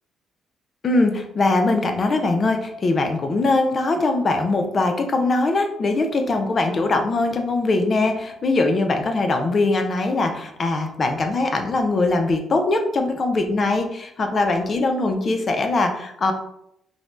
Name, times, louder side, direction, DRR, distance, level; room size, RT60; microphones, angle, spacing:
voice 1, 0.8-16.3, left 2 dB, 40° left, 5 dB, 0.4 m, -21 dB
2.6 x 2.1 x 3.1 m, 0.75 s
cardioid pair, 90°, 0 cm